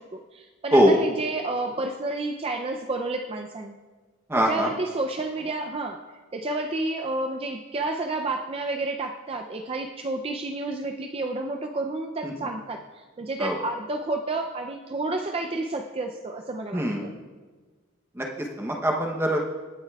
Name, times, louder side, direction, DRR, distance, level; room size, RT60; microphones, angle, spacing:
voice 1, 0.0-3.8 4.3-17.1, right 2 dB, 30° right, 4 dB, 0.4 m, -30 dB
voice 2, 4.3-4.7 12.2-12.3 13.4-13.6 16.7-17.1 18.2-19.4, equal, 10° right, 0 dB, 0.8 m, -22 dB
23.0 x 9.1 x 2.3 m, 1.4 s
head